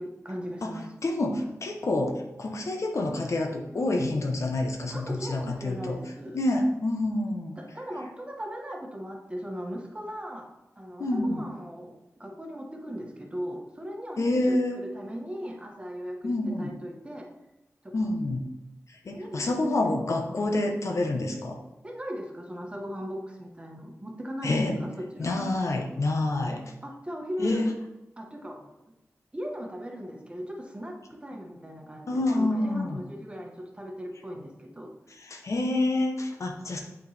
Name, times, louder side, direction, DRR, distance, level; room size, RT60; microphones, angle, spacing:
voice 1, 0.0-0.9 4.9-6.4 7.6-16.3 16.6-17.3 17.8-17.9 19.1-19.5 20.3-20.5 21.8-25.3 26.8-27.6 28.2-28.6 29.3-34.9, equal, 20° right, 1 dB, 1.2 m, -38 dB
voice 2, 1.0-6.0 6.3-7.6 11.0-11.5 14.2-14.8 16.2-16.7 17.9-18.5 18.9-21.6 24.4-24.8 25.2-26.6 27.4-27.7 32.1-33.0 35.2-36.8, left 2 dB, 65° left, 2 dB, 0.9 m, -27 dB
8.4 x 4.4 x 3.3 m, 0.96 s
wide cardioid pair, 75°, 6 cm